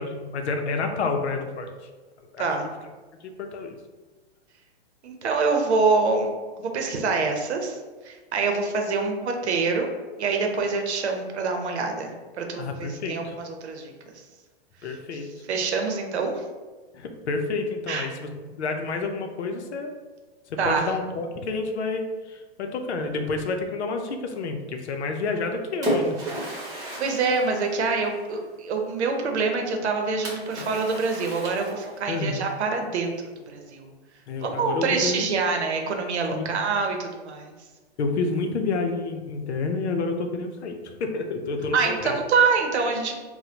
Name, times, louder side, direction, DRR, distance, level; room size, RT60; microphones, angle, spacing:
voice 1, 0.0-1.7 2.3-2.5 3.2-3.7 12.6-13.4 14.8-15.3 16.9-19.9 20.5-26.2 32.1-32.4 34.3-35.3 36.3-36.5 38.0-42.2, left 3 dB, 85° left, 4 dB, 0.7 m, -29 dB
voice 2, 5.0-6.3 6.6-7.8 8.0-9.9 10.2-13.9 15.5-16.3 17.9-18.1 20.6-20.9 27.0-33.1 33.5-33.9 34.4-37.5 41.7-43.1, right 4 dB, 85° right, 3 dB, 0.8 m, -25 dB
Splash splatter, 25.3-28.5 30.3-32.2, right 1 dB, 10° right, 0.8 m, -32 dB
4.2 x 2.2 x 2.7 m, 1.3 s
hypercardioid pair, 150°, 33 cm